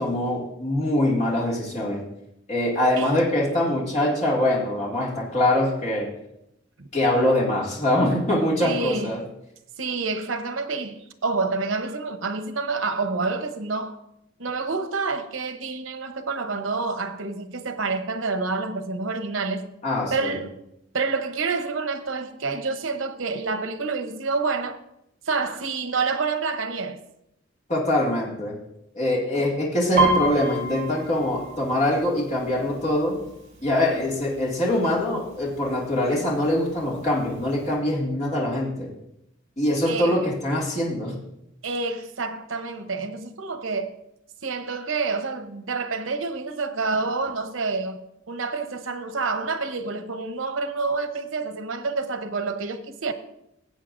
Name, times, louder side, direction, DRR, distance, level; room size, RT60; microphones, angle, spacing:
voice 1, 0.0-2.0 2.5-6.1 6.9-9.2 19.8-20.3 27.7-28.6 28.9-33.2 33.6-38.9 39.6-41.2, left 1 dB, 35° left, 2.2 m, -23 dB
voice 2, 8.6-9.2 9.8-14.0 14.4-19.7 20.1-20.5 20.9-24.8 25.3-27.0 29.3-29.5 39.9-40.2 41.6-44.0 44.4-48.0 48.3-53.1, right 4 dB, 90° right, 0.9 m, -28 dB
Piano, 30.0-33.6 34.0-34.4 34.7-35.3 35.9-36.0 36.3-37.3 37.7-37.8, right 2 dB, 35° right, 2.9 m, -28 dB
16.5 x 8.1 x 2.6 m
head